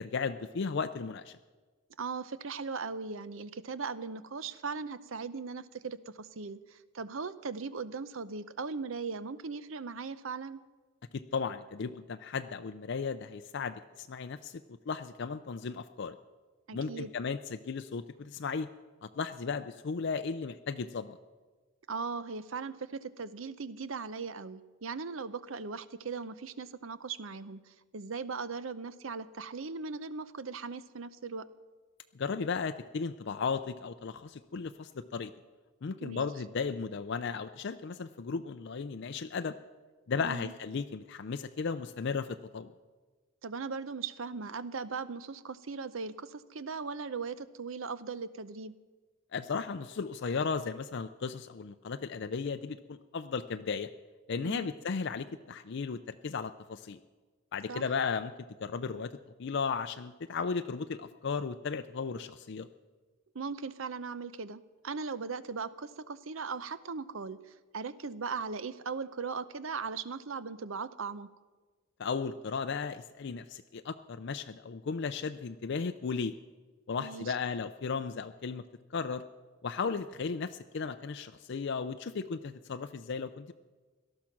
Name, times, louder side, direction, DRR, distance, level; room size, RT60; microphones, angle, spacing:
voice 1, 0.0-1.4 11.1-14.6 14.9-16.2 16.7-18.7 19.0-21.2 32.1-35.3 35.8-39.5 40.1-42.7 49.3-53.9 54.3-57.0 57.5-59.1 59.4-62.7 72.0-76.4 76.9-78.6 78.9-79.2 79.6-83.5, left 5 dB, 55° left, 8 dB, 0.5 m, -35 dB
voice 2, 2.0-10.6 16.7-17.1 21.9-31.5 36.0-36.3 40.2-40.5 43.4-48.7 54.4-54.7 57.7-57.8 63.3-71.3 77.0-77.3, right 5 dB, 70° right, 14 dB, 0.7 m, -39 dB
18.0 x 12.5 x 5.9 m, 1.4 s
head